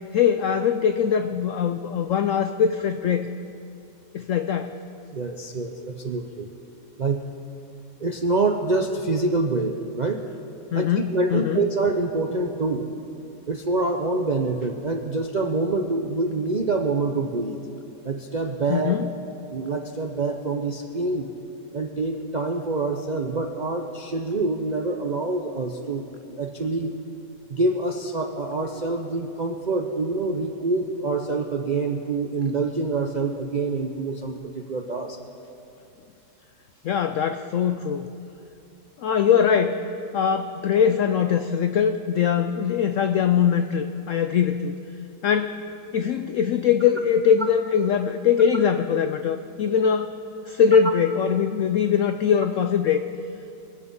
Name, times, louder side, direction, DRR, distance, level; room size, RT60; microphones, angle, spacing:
voice 1, 0.1-3.3 4.1-4.7 10.7-11.6 18.7-19.1 36.8-38.1 39.0-39.8 40.1-44.7 45.2-45.5 45.9-50.1 50.5-53.0, left 7 dB, 80° left, 9 dB, 0.7 m, -22 dB
voice 2, 5.1-6.5 7.0-7.3 8.0-10.2 10.8-12.9 13.5-17.6 18.0-19.2 19.5-21.3 21.7-26.9 27.5-35.2, right 3 dB, 60° right, 3 dB, 0.4 m, -26 dB
24.0 x 8.4 x 5.4 m, 2.7 s
omnidirectional pair, 1.8 m